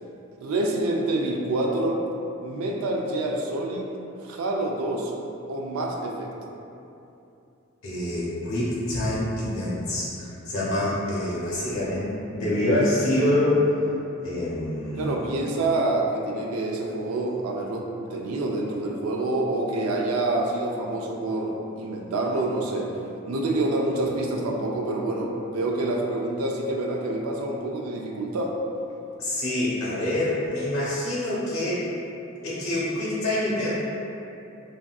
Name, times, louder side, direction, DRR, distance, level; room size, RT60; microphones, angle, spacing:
voice 1, 0.4-2.0 2.4-3.9 4.2-5.1 5.5-6.3 15.0-22.9 23.3-28.5, right 2 dB, 90° right, 0 dB, 0.4 m, -27 dB
voice 2, 7.8-13.7 14.2-15.1 29.2-31.8 32.4-33.9, left 1 dB, 75° left, -7 dB, 1.0 m, -26 dB
3.4 x 2.5 x 2.3 m, 2.8 s
head